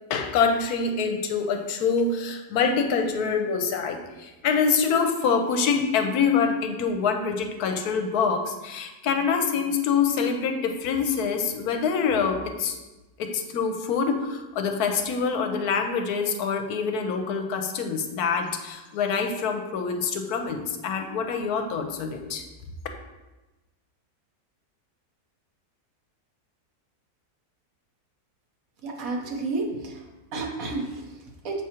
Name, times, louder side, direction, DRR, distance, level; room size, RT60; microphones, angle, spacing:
voice 1, 0.1-12.8 13.2-22.4, left 5 dB, 80° left, 5 dB, 1.1 m, -25 dB
voice 2, 28.8-31.6, right 3 dB, 65° right, 1 dB, 1.3 m, -32 dB
7.4 x 4.8 x 2.9 m, 1.1 s
omnidirectional pair, 1.7 m